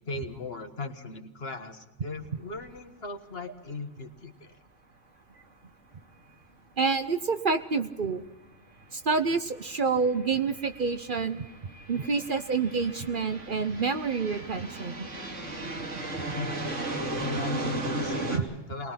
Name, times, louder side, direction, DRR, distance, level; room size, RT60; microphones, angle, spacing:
voice 1, 0.1-4.6 16.3-16.6 17.2-18.9, left 3 dB, 55° left, 6 dB, 1.8 m, -38 dB
sound 1, 2.2-2.4 2.7-2.8 6.8-6.9 8.0-8.2 8.8-18.4, right 2 dB, 90° right, 2.8 m, -36 dB
voice 2, 6.8-8.2 8.9-11.4 11.9-15.1 16.3-16.4 18.3-18.4, right 4 dB, 45° right, 9 dB, 0.9 m, -28 dB
23.0 x 20.0 x 5.8 m, 1.0 s
omnidirectional pair, 1.2 m